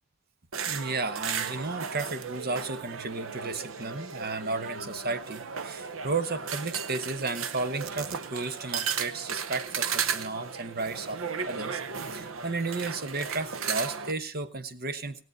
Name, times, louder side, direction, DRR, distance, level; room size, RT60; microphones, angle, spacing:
sound 1, 0.5-14.1, right 6 dB, 80° right, 0.8 m, -35 dB
voice 1, 0.7-11.8 12.1-15.2, right 3 dB, 50° right, 11 dB, 1.0 m, -33 dB
18.0 x 8.0 x 5.3 m, 0.43 s
head